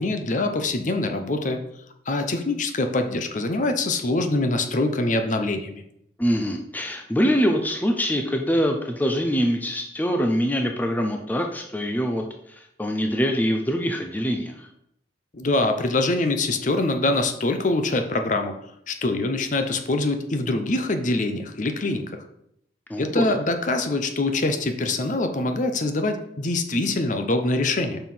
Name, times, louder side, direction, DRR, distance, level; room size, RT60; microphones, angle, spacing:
voice 1, 0.0-1.6 2.1-5.8 15.3-18.6 18.9-22.1 23.0-28.0, left 2 dB, 45° left, 6 dB, 0.7 m, -24 dB
voice 2, 6.2-14.7 22.9-23.2, equal, 10° left, 3 dB, 0.5 m, -24 dB
5.5 x 4.7 x 5.5 m, 0.74 s
head